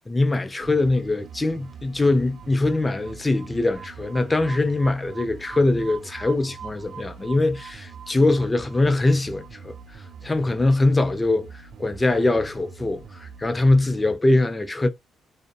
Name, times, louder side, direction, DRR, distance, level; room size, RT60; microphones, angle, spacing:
voice 1, 0.1-9.8 10.2-11.5 11.8-14.9, left 2 dB, 20° left, 0.4 m, -22 dB
sound 1, 0.6-14.2, right 6 dB, 60° right, 0.3 m, -42 dB
2.5 x 2.0 x 2.5 m
cardioid pair, 90°, 0 cm